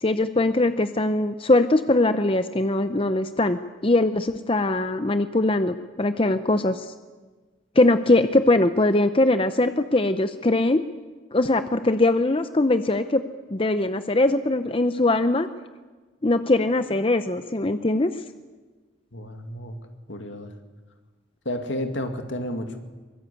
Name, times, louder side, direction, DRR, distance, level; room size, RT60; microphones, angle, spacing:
voice 1, 0.0-6.9 7.8-10.8 11.3-13.2 13.5-15.5 16.2-18.1, left 2 dB, 30° left, 10 dB, 0.7 m, -21 dB
voice 2, 19.1-19.8 20.1-20.5 21.4-22.8, left 1 dB, 70° left, 5 dB, 2.4 m, -31 dB
23.0 x 21.5 x 8.4 m, 1.3 s
head